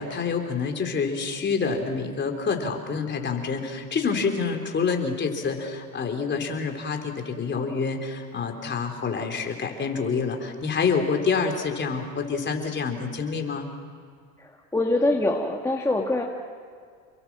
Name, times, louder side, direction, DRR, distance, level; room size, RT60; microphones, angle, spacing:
voice 1, 0.0-13.7, left 5 dB, 25° left, 4 dB, 3.8 m, -27 dB
voice 2, 14.4-16.2, left 2 dB, 5° left, 0 dB, 1.7 m, -24 dB
29.5 x 22.5 x 6.1 m, 2.2 s
supercardioid pair, 120°, 43 cm